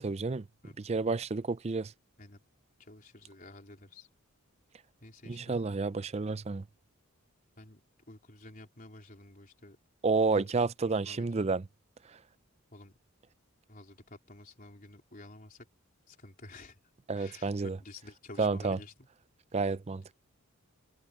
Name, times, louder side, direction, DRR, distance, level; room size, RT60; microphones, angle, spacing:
voice 1, 0.0-0.4 0.8-1.9 5.3-6.6 10.0-11.6 17.1-17.8 18.4-18.8 19.5-20.1, right 4 dB, 30° right, 0.4 m, -30 dB
voice 2, 2.8-4.1 5.0-5.6 7.6-7.8 8.1-9.8 10.1-11.3 12.7-13.0 13.7-15.7 16.1-16.8 17.1-19.1, left 2 dB, 40° left, 4.0 m, -51 dB
head